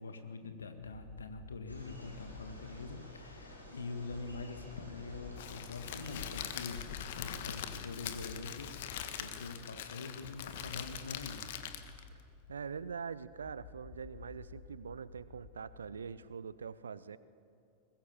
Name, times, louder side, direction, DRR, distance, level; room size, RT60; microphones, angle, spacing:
voice 1, 0.0-8.8 9.2-11.5, left 3 dB, 70° left, 7 dB, 1.8 m, -44 dB
sound 1, 0.8-16.3, left 5 dB, 35° left, 2.5 m, -54 dB
sound 2, 1.7-6.9, left 1 dB, 85° left, 4.5 m, -52 dB
Crackle, 5.4-12.1, left 9 dB, 55° left, 1.6 m, -43 dB
voice 2, 12.5-17.2, right 6 dB, 70° right, 17 dB, 0.7 m, -43 dB
22.5 x 21.0 x 7.2 m, 2.5 s
figure-of-eight pair, 90°, 0 cm